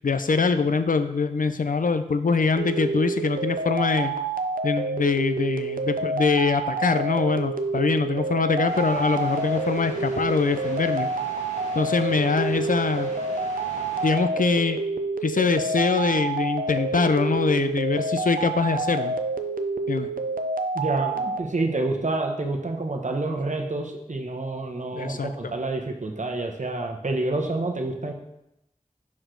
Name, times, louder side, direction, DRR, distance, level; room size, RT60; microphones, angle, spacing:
voice 1, 0.0-4.1 4.6-11.1 11.8-13.1 14.0-14.8 15.2-19.1 19.9-20.1 24.9-25.5, left 4 dB, 70° left, 10 dB, 0.4 m, -23 dB
sound 1, 2.6-21.4, right 3 dB, 75° right, 0.5 m, -28 dB
sound 2, 8.7-14.2, equal, 50° left, 1.6 m, -41 dB
voice 2, 20.7-28.1, right 2 dB, 55° right, 2 dB, 0.9 m, -28 dB
6.0 x 4.7 x 3.8 m, 0.85 s
wide cardioid pair, 45°, 15 cm